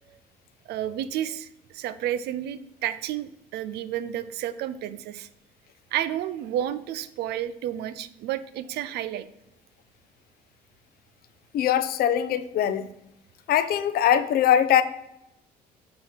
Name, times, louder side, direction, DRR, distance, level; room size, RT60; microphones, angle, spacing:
voice 1, 0.7-1.5 1.7-5.3 5.9-9.3, right 11 dB, 75° right, 0.5 m, -31 dB
voice 2, 11.5-12.9 13.5-14.8, left 10 dB, 65° left, 0.6 m, -22 dB
8.5 x 3.0 x 5.7 m
cardioid pair, 110°, 17 cm